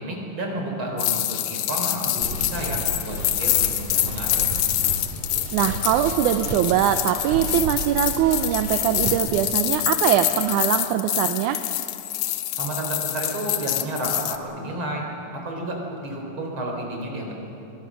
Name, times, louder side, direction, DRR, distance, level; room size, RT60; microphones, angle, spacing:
voice 1, 0.0-4.5 12.5-15.0 15.3-17.3, right 1 dB, 35° right, 1 dB, 4.4 m, -31 dB
sound 1, 1.0-14.4, left 13 dB, 75° left, 2.0 m, -26 dB
sound 2, 2.2-9.2, right 3 dB, 60° right, 3.4 m, -33 dB
voice 2, 5.5-11.6, right 11 dB, 75° right, 8 dB, 2.0 m, -22 dB
25.5 x 23.0 x 6.2 m, 3.0 s
omnidirectional pair, 4.0 m